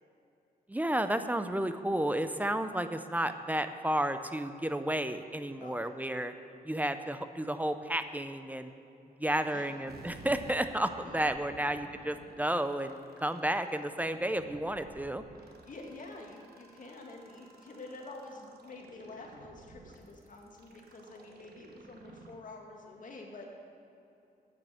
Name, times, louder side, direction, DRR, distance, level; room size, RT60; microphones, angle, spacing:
voice 1, 0.7-6.3 6.6-8.7 9.2-15.2, right 1 dB, 10° right, 9 dB, 0.6 m, -32 dB
voice 2, 9.2-9.8 11.6-11.7 15.4-23.6, left 2 dB, 55° left, 1 dB, 1.9 m, -48 dB
sound 1, 9.9-22.4, right 3 dB, 80° right, 1.3 m, -54 dB
8.8 x 7.5 x 8.1 m, 2.8 s
cardioid pair, 85°, 16 cm